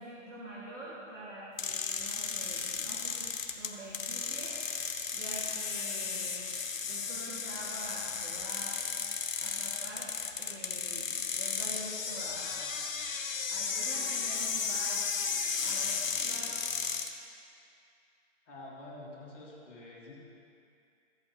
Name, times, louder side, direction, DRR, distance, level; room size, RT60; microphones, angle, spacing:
voice 1, 0.0-3.2 3.5-4.6 5.1-6.5 6.9-8.8 9.4-10.1 10.4-12.8 13.5-15.0 15.6-16.5, right 1 dB, 75° right, -8 dB, 2.8 m, -45 dB
sound 1, 1.6-17.1, left 5 dB, 90° left, 1.2 m, -34 dB
voice 2, 18.4-20.1, left 2 dB, 10° left, -12 dB, 1.4 m, -47 dB
15.0 x 8.7 x 3.3 m, 2.5 s
hypercardioid pair, 180°, 39 cm